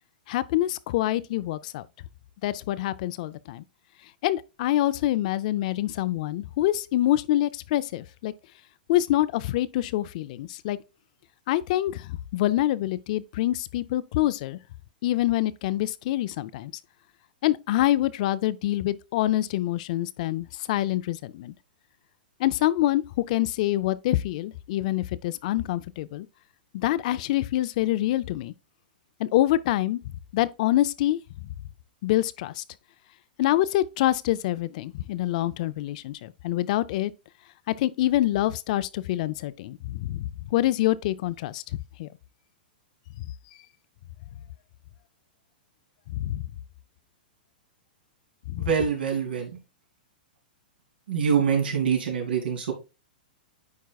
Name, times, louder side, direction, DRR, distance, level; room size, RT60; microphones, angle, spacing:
voice 1, 0.3-1.9 2.4-3.6 4.2-8.3 8.9-10.8 11.5-14.6 15.0-16.7 17.4-21.5 22.4-26.3 26.7-28.5 29.2-30.0 30.3-31.2 32.0-32.6 33.4-37.1 37.7-41.6 42.0-42.1 46.1-46.4 48.5-48.7, left 14 dB, 50° left, 0.4 m, -26 dB
voice 2, 48.6-49.5 51.1-52.7, right 7 dB, 85° right, 2.8 m, -25 dB
9.5 x 4.5 x 2.3 m
hypercardioid pair, 150°, 5 cm